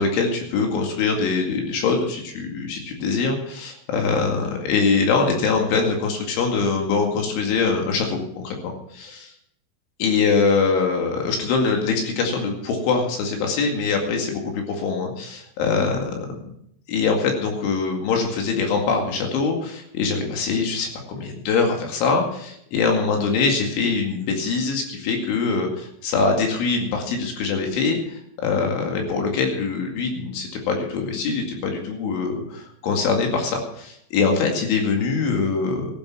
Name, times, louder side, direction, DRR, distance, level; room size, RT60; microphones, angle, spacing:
voice 1, 0.0-9.3 10.0-16.3 16.9-35.9, left 4 dB, 80° left, 2 dB, 4.7 m, -23 dB
15.5 x 10.5 x 6.0 m, 0.71 s
omnidirectional pair, 5.5 m